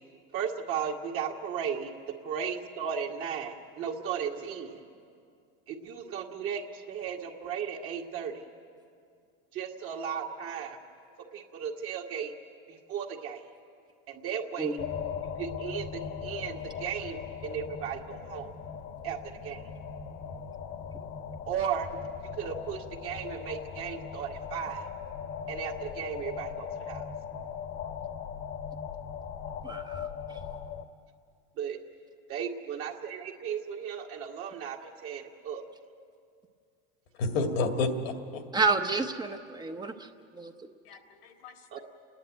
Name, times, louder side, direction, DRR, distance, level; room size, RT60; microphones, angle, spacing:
voice 1, 0.3-1.9 2.2-4.8 5.7-8.4 9.5-10.8 11.3-12.3 12.7-13.4 14.1-14.8 15.4-18.5 19.0-19.2 19.4-19.6 21.5-21.9 22.4-24.9 25.5-27.1 31.6-31.8 32.3-35.6 41.7-41.8, right 7 dB, 50° right, -1 dB, 2.0 m, -35 dB
sound 1, 14.8-30.9, left 7 dB, 50° left, 1.2 m, -39 dB
voice 2, 29.6-30.4 38.5-40.7, right 4 dB, 15° right, 6 dB, 0.8 m, -31 dB
voice 3, 37.2-38.4 40.9-41.8, left 3 dB, 90° left, 5 dB, 2.2 m, -31 dB
30.0 x 10.0 x 9.3 m, 2.3 s
supercardioid pair, 125°, 29 cm